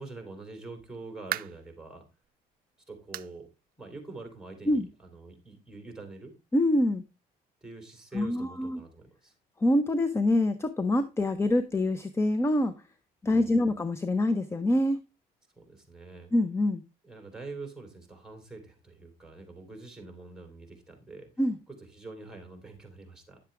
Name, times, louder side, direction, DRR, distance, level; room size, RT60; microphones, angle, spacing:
voice 1, 0.0-2.1 2.9-3.5 3.8-6.3 7.6-9.3 13.3-13.7 15.6-16.3 17.0-21.3 21.7-23.4, right 3 dB, 5° right, 3.7 m, -45 dB
sound 1, 0.9-1.7 2.2-2.4 3.1-3.4 3.7-3.8 4.3-4.4 5.5-5.6, right 14 dB, 60° right, 0.4 m, -37 dB
voice 2, 6.5-7.0 8.1-8.8 9.6-12.7 13.2-15.0 16.3-16.8 21.4-21.6, left 1 dB, 15° left, 0.7 m, -25 dB
10.5 x 7.4 x 3.4 m
cardioid pair, 110°, 17 cm